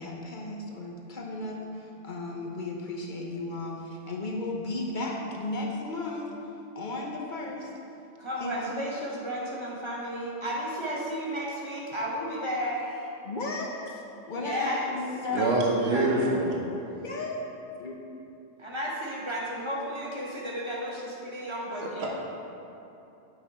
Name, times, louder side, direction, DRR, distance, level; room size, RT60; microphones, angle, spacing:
voice 1, 0.0-6.3 6.7-7.7 8.4-8.7 13.2-15.5 16.9-18.0, left 2 dB, 45° left, -1 dB, 0.8 m, -35 dB
voice 2, 8.2-13.1 14.4-14.9 15.3-16.3 18.6-22.1, equal, 25° right, -6 dB, 1.3 m, -33 dB
voice 3, 15.3-16.6 21.8-22.1, right 2 dB, 60° right, -1 dB, 1.1 m, -25 dB
7.8 x 5.2 x 4.2 m, 2.9 s
omnidirectional pair, 1.2 m